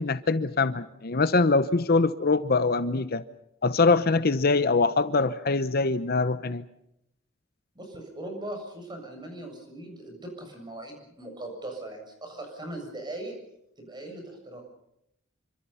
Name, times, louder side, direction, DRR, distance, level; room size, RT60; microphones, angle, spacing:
voice 1, 0.0-3.2 3.6-6.6, left 3 dB, 50° left, 13 dB, 0.8 m, -23 dB
voice 2, 7.8-13.4 13.8-14.6, right 1 dB, 20° right, 3 dB, 7.1 m, -39 dB
27.0 x 25.5 x 5.6 m, 0.79 s
head